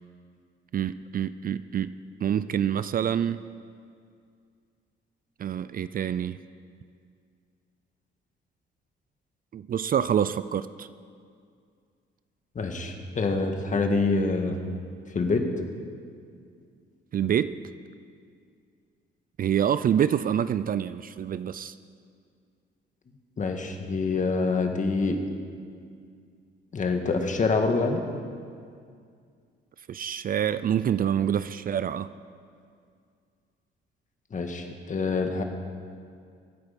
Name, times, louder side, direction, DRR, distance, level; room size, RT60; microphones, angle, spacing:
voice 1, 0.7-3.4 5.4-6.4 9.5-10.9 17.1-17.6 19.4-21.7 29.9-32.1, right 9 dB, 45° right, 14 dB, 0.4 m, -26 dB
voice 2, 12.6-14.6 15.1-15.4 23.4-25.2 26.7-28.0 34.3-35.4, left 3 dB, 40° left, 4 dB, 1.8 m, -26 dB
23.0 x 8.9 x 5.3 m, 2.2 s
cardioid pair, 90°, 20 cm